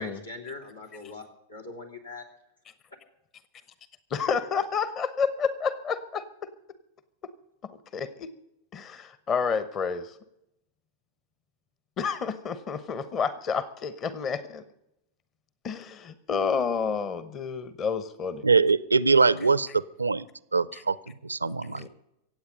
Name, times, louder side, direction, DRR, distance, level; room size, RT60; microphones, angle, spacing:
voice 1, 0.0-2.2, left 3 dB, 85° left, 1 dB, 3.2 m, -41 dB
voice 2, 4.1-6.5 7.9-8.3 8.7-10.1 12.0-14.6 15.6-18.4 20.7-20.8 21.8-21.9, left 6 dB, 30° left, 14 dB, 1.0 m, -30 dB
voice 3, 18.4-20.3 20.5-21.9, right 4 dB, 80° right, 19 dB, 0.5 m, -23 dB
24.5 x 8.5 x 5.3 m, 0.84 s
figure-of-eight pair, 90°, 0 cm